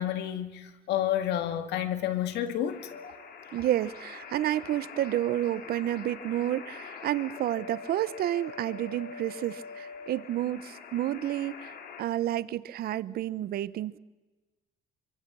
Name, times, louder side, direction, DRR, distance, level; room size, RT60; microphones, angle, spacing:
voice 1, 0.0-2.8, left 11 dB, 80° left, 2.2 m, -30 dB
sound 1, 2.7-12.0, left 6 dB, 65° left, 3.4 m, -44 dB
voice 2, 3.5-14.0, right 13 dB, 65° right, 0.8 m, -30 dB
25.5 x 24.5 x 6.2 m
cardioid pair, 110°, 17 cm